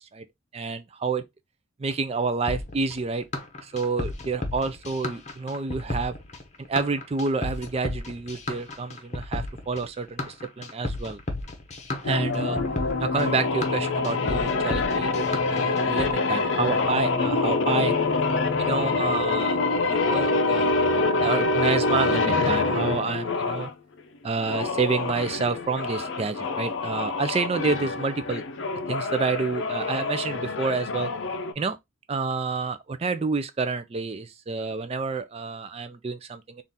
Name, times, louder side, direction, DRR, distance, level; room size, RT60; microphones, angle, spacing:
voice 1, 0.5-1.2 1.8-3.2 3.6-6.2 6.7-11.2 12.0-12.6 13.0-17.9 18.6-20.7 21.2-23.7 24.2-28.4 28.9-31.1 31.6-31.8 32.1-36.6, right 4 dB, 30° right, 0.4 m, -29 dB
sound 1, 2.5-16.1, left 2 dB, 35° left, 0.8 m, -33 dB
sound 2, 12.0-23.7 24.4-31.5, left 3 dB, 65° left, 0.5 m, -26 dB
3.7 x 2.5 x 4.0 m
head